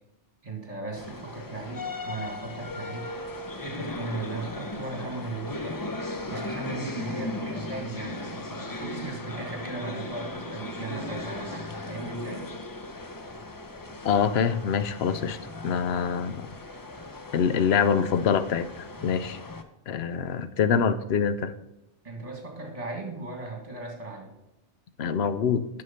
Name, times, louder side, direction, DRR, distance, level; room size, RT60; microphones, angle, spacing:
voice 1, 0.4-3.2 3.6-5.8 6.3-12.4 22.0-24.3, right 3 dB, 30° right, 1 dB, 2.1 m, -37 dB
sound 1, 1.0-19.6, left 2 dB, 25° left, 0.4 m, -37 dB
voice 2, 14.0-15.4 15.6-16.5 17.3-19.4 19.9-21.5 25.0-25.7, left 7 dB, 65° left, 12 dB, 0.9 m, -25 dB
8.1 x 5.8 x 5.6 m, 0.90 s
omnidirectional pair, 1.2 m